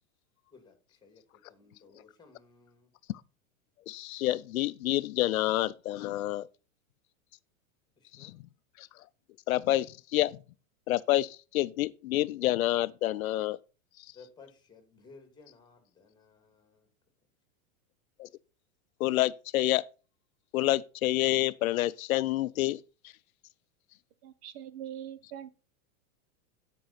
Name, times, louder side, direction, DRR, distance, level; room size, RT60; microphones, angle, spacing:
voice 1, 0.5-2.9 8.0-8.4 14.1-16.9, left 4 dB, 10° left, 2.1 m, -57 dB
voice 2, 3.9-6.5 8.2-8.3 8.8-8.9 9.5-10.4 10.9-13.6 18.2-18.3 19.0-19.8 20.5-22.8, left 16 dB, 85° left, 0.6 m, -28 dB
voice 3, 24.2-25.5, right 10 dB, 50° right, 0.9 m, -42 dB
13.0 x 5.4 x 4.1 m
supercardioid pair, 135°, 41 cm